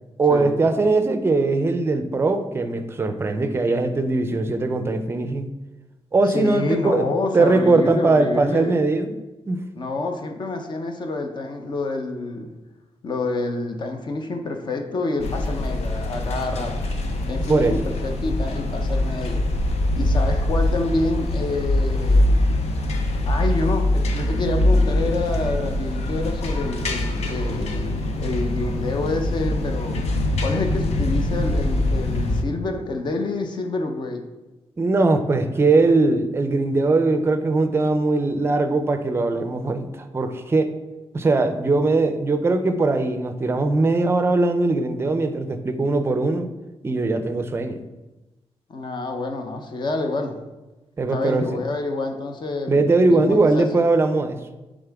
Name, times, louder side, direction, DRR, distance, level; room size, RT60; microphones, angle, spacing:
voice 1, 0.2-5.5 6.1-7.1 7.3-9.2 9.5-9.6 17.4-17.8 34.8-40.7 41.1-46.5 46.8-47.8 51.0-51.6 52.7-54.4, right 3 dB, 25° right, 9 dB, 0.5 m, -20 dB
voice 2, 6.3-8.8 9.8-12.5 13.0-16.8 17.3-19.4 20.0-22.6 23.3-30.0 30.4-34.2 48.7-50.4 51.1-53.7, left 2 dB, 45° left, 4 dB, 0.8 m, -28 dB
sound 1, 15.2-32.4, left 1 dB, 80° left, 0.7 m, -23 dB
10.5 x 3.7 x 3.5 m, 1.1 s
wide cardioid pair, 165°, 11 cm